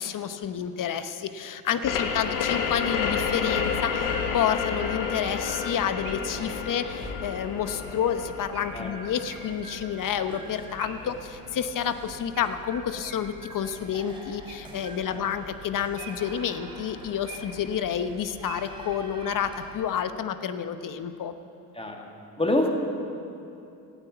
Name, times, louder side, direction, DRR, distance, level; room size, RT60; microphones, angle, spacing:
voice 1, 0.0-21.3, left 8 dB, 45° left, 11 dB, 1.0 m, -29 dB
sound 1, 1.8-11.2, left 6 dB, 75° left, 1.5 m, -31 dB
sound 2, 2.7-19.8, right 1 dB, 10° right, 2.8 m, -46 dB
Chirp tweet, 4.1-6.4 8.5-11.2 12.3-13.9 14.5-15.3 16.0-17.7 18.2-19.7, right 5 dB, 50° right, 2.6 m, -46 dB
voice 2, 21.7-22.1 22.4-22.7, left 1 dB, 15° left, 1 dB, 2.2 m, -26 dB
14.0 x 9.0 x 8.2 m, 2.7 s
supercardioid pair, 75°, 45 cm